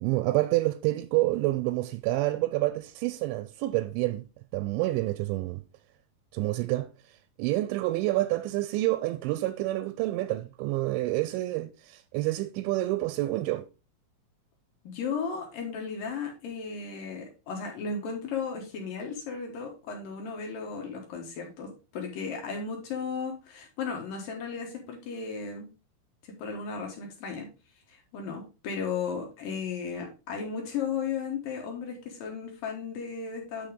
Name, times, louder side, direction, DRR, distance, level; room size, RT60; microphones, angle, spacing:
voice 1, 0.0-4.2 4.5-5.6 6.3-13.7, right 17 dB, 85° right, 2.8 m, -28 dB
voice 2, 14.8-25.7 26.2-27.5 27.9-33.7, left 5 dB, 70° left, 2.3 m, -35 dB
8.7 x 5.3 x 3.7 m
omnidirectional pair, 5.5 m